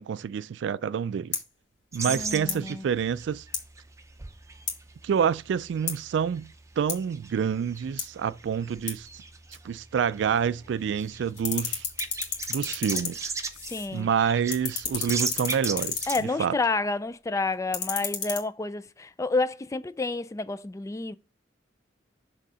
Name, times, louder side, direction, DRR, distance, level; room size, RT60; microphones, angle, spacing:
voice 1, 0.0-1.4 1.9-3.4 5.0-6.5 6.8-9.1 9.6-11.8 12.5-13.3 13.9-16.0 16.4-16.5, right 7 dB, 70° right, 0.3 m, -27 dB
sound 1, 1.3-1.5 2.4-2.6 3.5-3.7 4.7-4.8 5.9-6.0 6.9-7.0 8.0-8.1 8.9-9.0 9.5-9.6 10.3-11.0 11.3-14.0 14.3-16.3 17.5-18.4, left 7 dB, 75° left, 2.1 m, -33 dB
sound 2, 1.9-16.2, right 4 dB, 15° right, 0.6 m, -39 dB
voice 2, 2.1-2.9 13.7-14.1 16.1-21.2, left 3 dB, 15° left, 0.3 m, -29 dB
6.6 x 3.6 x 5.4 m
head